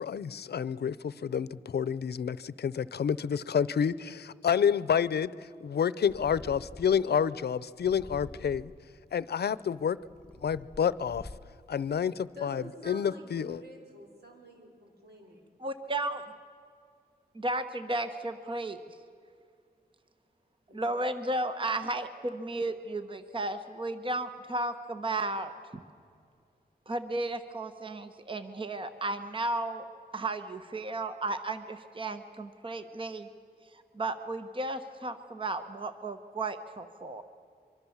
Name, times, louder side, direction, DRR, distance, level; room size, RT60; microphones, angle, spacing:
voice 1, 0.0-8.7 9.1-10.0 10.4-11.3 11.7-13.6, left 7 dB, 85° left, 18 dB, 0.7 m, -29 dB
Purr, 6.0-7.1 7.8-8.9 9.6-11.7, left 2 dB, 5° left, 1.4 m, -48 dB
voice 2, 12.4-15.4 20.7-20.8, equal, 85° right, 1 dB, 5.8 m, -48 dB
voice 3, 15.6-16.2 17.3-19.0 20.7-25.8 26.9-29.9 30.1-33.3 33.6-37.2, right 2 dB, 30° right, 9 dB, 1.1 m, -34 dB
24.5 x 24.0 x 7.3 m, 2.4 s
wide cardioid pair, 140°, 17 cm